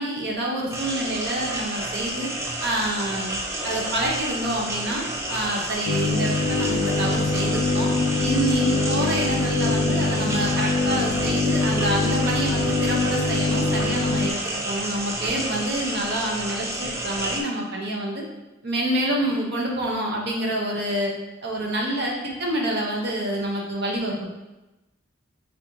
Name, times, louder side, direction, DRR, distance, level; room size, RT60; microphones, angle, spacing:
voice 1, 0.0-2.3 2.6-5.0 5.3-7.9 8.2-18.2 18.6-21.1 21.4-22.1 22.4-24.3, right 1 dB, 55° right, -2 dB, 0.9 m, -27 dB
sound 1, 0.7-17.4, right 1 dB, 15° right, 0.5 m, -31 dB
sound 2, 5.9-14.3, left 3 dB, 45° left, 0.3 m, -24 dB
4.0 x 3.9 x 2.8 m, 1.0 s
head